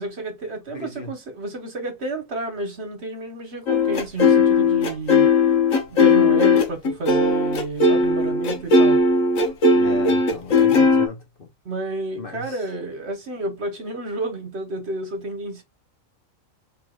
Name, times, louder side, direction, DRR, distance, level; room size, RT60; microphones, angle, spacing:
voice 1, 0.0-5.3 5.9-9.0 11.6-15.6, right 2 dB, 55° right, 1.4 m, -31 dB
voice 2, 0.7-1.1 9.7-11.5 12.2-12.4, left 4 dB, 45° left, 1.0 m, -35 dB
sound 1, 3.7-11.1, left 3 dB, 75° left, 1.4 m, -17 dB
4.7 x 3.4 x 2.3 m
omnidirectional pair, 1.4 m